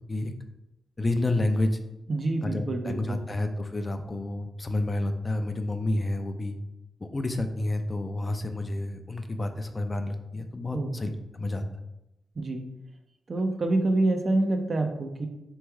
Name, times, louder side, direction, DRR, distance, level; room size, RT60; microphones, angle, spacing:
voice 1, 1.0-1.8 2.4-6.5 7.0-11.7, left 2 dB, 30° left, 6 dB, 0.5 m, -29 dB
voice 2, 2.1-3.2 10.7-11.0 12.4-12.6 13.3-15.3, right 2 dB, 50° right, 4 dB, 0.7 m, -27 dB
3.4 x 3.2 x 4.7 m, 0.91 s
cardioid pair, 65°, 0 cm